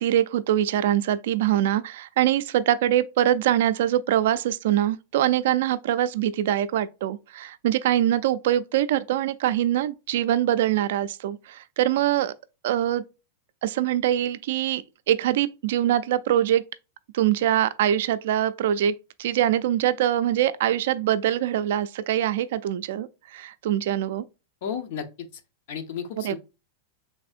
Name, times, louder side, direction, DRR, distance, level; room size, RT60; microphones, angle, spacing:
voice 1, 0.0-12.3 12.6-13.0 13.6-16.6 17.1-24.2 26.2-26.4, right 12 dB, 65° right, 0.3 m, -23 dB
voice 2, 24.6-25.4 25.7-26.4, left 7 dB, 55° left, 0.7 m, -33 dB
3.5 x 3.4 x 2.4 m
supercardioid pair, 165°, 0 cm